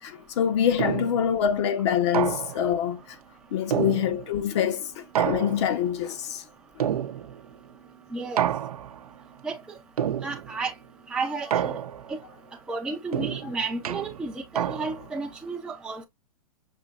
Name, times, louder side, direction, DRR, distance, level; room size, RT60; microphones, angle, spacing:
voice 1, 0.0-3.2 3.5-6.4 6.8-6.9, left 9 dB, 50° left, 0.9 m, -25 dB
sound 1, 0.8-1.3 2.1-2.8 3.7-4.5 5.1-5.9 6.8-7.5 8.4-9.1 10.0-10.6 11.5-12.2 13.1-15.2, right 10 dB, 80° right, 0.6 m, -29 dB
voice 2, 8.1-8.4 9.4-9.6 10.2-10.7 11.1-11.8 12.1-12.2 12.7-16.0, right 3 dB, 5° right, 0.5 m, -32 dB
5.8 x 2.9 x 2.4 m
hypercardioid pair, 145°, 19 cm